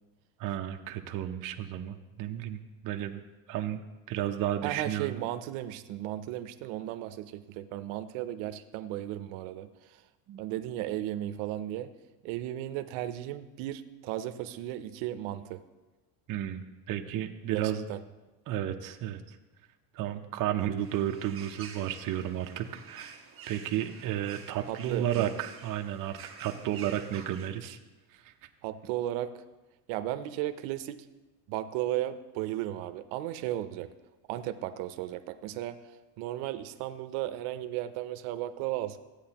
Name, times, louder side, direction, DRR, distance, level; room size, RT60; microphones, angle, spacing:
voice 1, 0.4-3.2 3.5-3.8 4.1-5.2 10.3-10.4 16.3-17.8 18.5-19.4 19.9-23.2 23.5-27.8 28.1-28.3, right 11 dB, 45° right, 5 dB, 0.7 m, -33 dB
voice 2, 4.6-10.0 10.4-11.9 12.2-15.6 17.5-18.0 24.7-25.3 28.6-29.4 29.9-31.1 31.5-33.9 34.3-39.0, right 13 dB, 85° right, 11 dB, 0.7 m, -35 dB
sound 1, 20.8-27.5, right 6 dB, 30° right, 1.2 m, -49 dB
14.5 x 8.8 x 2.9 m, 1.1 s
cardioid pair, 150°, 46 cm